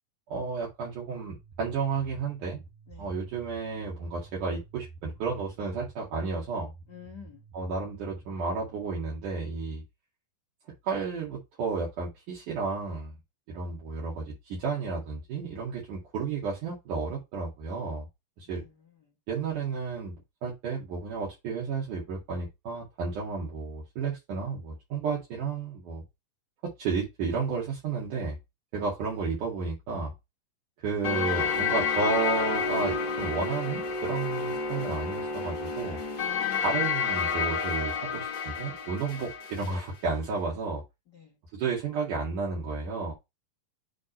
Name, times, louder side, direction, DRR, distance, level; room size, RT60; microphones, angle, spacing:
voice 1, 0.3-2.6 3.0-6.7 7.5-9.8 10.8-13.2 13.5-18.1 18.4-18.6 19.3-26.0 26.8-28.4 28.7-30.1 30.8-36.0 36.6-40.8 41.5-43.1, right 4 dB, 70° right, 3.5 m, -32 dB
sound 1, 1.3-8.7, right 4 dB, 85° right, 3.4 m, -50 dB
voice 2, 2.9-3.2 6.9-7.4 18.5-18.7 36.2-36.6 41.1-41.4, left 9 dB, 80° left, 0.9 m, -48 dB
sound 2, 31.0-39.8, left 5 dB, 50° left, 1.5 m, -30 dB
7.8 x 3.7 x 4.3 m
omnidirectional pair, 3.9 m